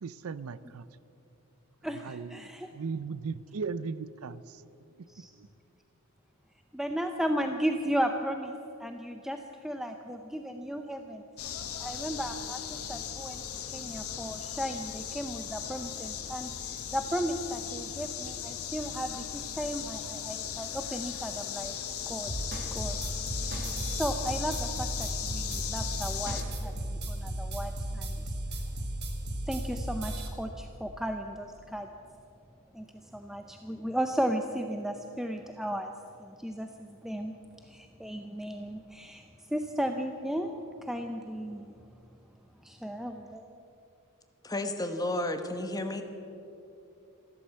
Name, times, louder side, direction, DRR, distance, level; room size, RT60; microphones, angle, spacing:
voice 1, 0.0-0.8 2.0-4.6 5.4-5.5, right 5 dB, 70° right, 17 dB, 0.5 m, -37 dB
voice 2, 1.8-2.7 5.1-5.3 6.7-8.5 8.8-11.2 11.8-12.6 12.9-13.4 13.7-16.5 16.9-21.7 22.1-23.6 24.0-28.3 29.5-31.9 32.7-32.9 33.1-35.9 36.2-37.3 37.6-41.7 42.6-43.4, equal, ahead, 5 dB, 0.6 m, -35 dB
sound 1, 11.4-26.4, left 8 dB, 85° left, 1.3 m, -38 dB
sound 2, 22.3-30.3, right 1 dB, 50° right, 2.0 m, -35 dB
voice 3, 44.4-46.0, left 1 dB, 15° left, 7 dB, 1.1 m, -32 dB
15.0 x 12.5 x 7.5 m, 2.7 s
head